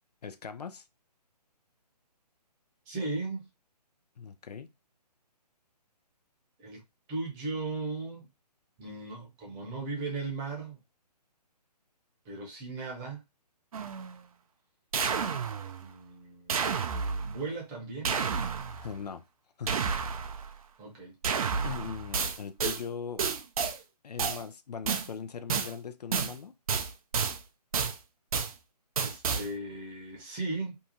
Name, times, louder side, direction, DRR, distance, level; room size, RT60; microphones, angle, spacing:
voice 1, 0.2-0.8 4.2-4.7 18.8-19.2 19.6-19.8 21.6-23.2 24.0-26.5, left 6 dB, 70° left, 0.4 m, -40 dB
voice 2, 2.9-3.5 6.6-6.8 7.1-8.3 8.8-10.8 12.2-13.2 15.8-16.9 17.2-18.2 19.8-20.0 20.8-21.1 29.0-30.8, right 3 dB, 20° right, 0.8 m, -37 dB
sound 1, 13.7-14.2 14.9-15.9 16.5-17.5 18.0-19.0 19.7-20.6 21.2-22.8 23.2-23.8 24.2-24.4 24.9-25.1 25.5-25.7 26.1-26.4 26.7-27.4 27.7-28.0 28.3-28.5 29.0-29.5, right 6 dB, 55° right, 0.5 m, -30 dB
2.7 x 2.3 x 2.8 m
figure-of-eight pair, 140°, 21 cm